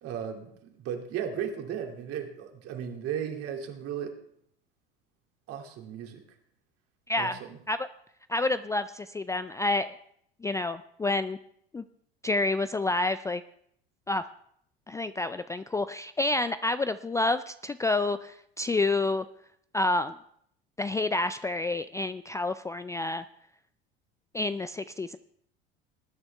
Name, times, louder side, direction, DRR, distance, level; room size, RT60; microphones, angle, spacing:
voice 1, 0.0-4.2 5.5-6.2 7.2-7.6, right 8 dB, 50° right, 3 dB, 2.4 m, -35 dB
voice 2, 7.1-7.4 7.7-7.9 8.3-10.0 10.4-11.4 11.7-11.9 12.2-13.4 14.1-14.3 14.9-19.3 19.7-20.2 20.8-23.2 24.3-25.2, left 2 dB, 10° left, 12 dB, 0.4 m, -29 dB
20.0 x 9.7 x 3.4 m, 0.68 s
hypercardioid pair, 75°, 29 cm